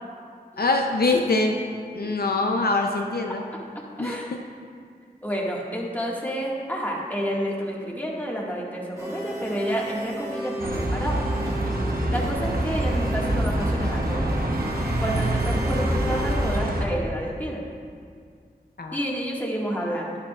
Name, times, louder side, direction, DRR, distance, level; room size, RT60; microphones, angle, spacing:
voice 1, 0.6-1.6 1.9-3.4 4.0-4.2 18.8-19.0, left 3 dB, 75° left, 2 dB, 0.6 m, -23 dB
voice 2, 4.0-4.3 5.2-11.2 12.1-14.4 15.0-17.6 18.9-20.2, equal, 10° left, -4 dB, 1.8 m, -30 dB
sound 1, 9.0-16.6, right 1 dB, 20° right, 1.5 m, -36 dB
Bus, 10.6-16.8, right 1 dB, 65° right, 1.0 m, -25 dB
11.0 x 11.0 x 2.4 m, 2.1 s
wide cardioid pair, 55°, 16 cm